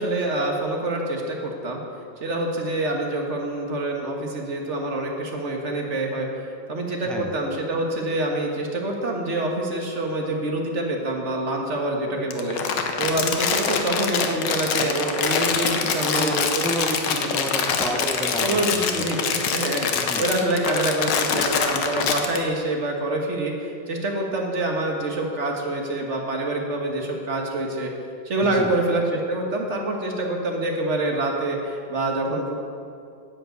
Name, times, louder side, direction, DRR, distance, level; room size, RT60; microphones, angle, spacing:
voice 1, 0.0-1.8 2.2-6.3 6.7-16.6 18.4-27.9 28.2-32.5, right 2 dB, 45° right, 1 dB, 1.7 m, -26 dB
Crumpling crinkling, 12.3-22.4, left 6 dB, 80° left, 1.6 m, -24 dB
voice 2, 16.1-19.1 19.9-20.2 28.4-28.7, right 1 dB, ahead, 2 dB, 0.4 m, -30 dB
10.5 x 7.8 x 8.1 m, 2.5 s
omnidirectional pair, 1.9 m